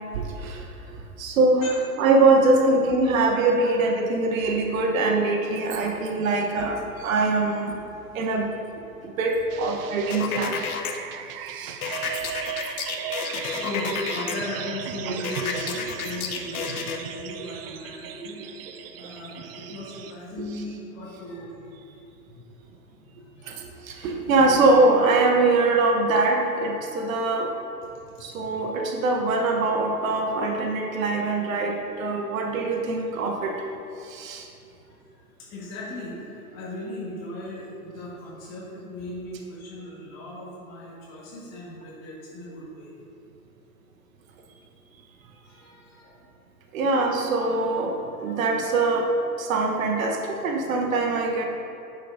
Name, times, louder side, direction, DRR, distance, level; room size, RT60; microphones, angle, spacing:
voice 1, 1.2-1.7 2.0-7.7 8.1-8.5 9.0-10.6 11.5-11.8 12.0-12.1 15.1-15.2 23.5-23.6 23.9-27.5 28.2-33.5 34.1-34.4 46.7-49.1 49.4-51.4, right 3 dB, 60° right, 3 dB, 1.1 m, -23 dB
sound 1, 9.5-20.1, right 9 dB, 40° right, 0.5 m, -37 dB
sound 2, 10.1-10.9 11.8-14.3 15.2-17.0, left 6 dB, 65° left, 0.9 m, -31 dB
voice 2, 13.2-18.4 19.0-21.7 22.9-23.6 28.0-28.6 35.4-42.9 45.4-46.1 48.2-48.5, left 1 dB, 35° left, -6 dB, 1.7 m, -37 dB
10.0 x 6.1 x 2.6 m, 2.8 s
figure-of-eight pair, 105°, 46 cm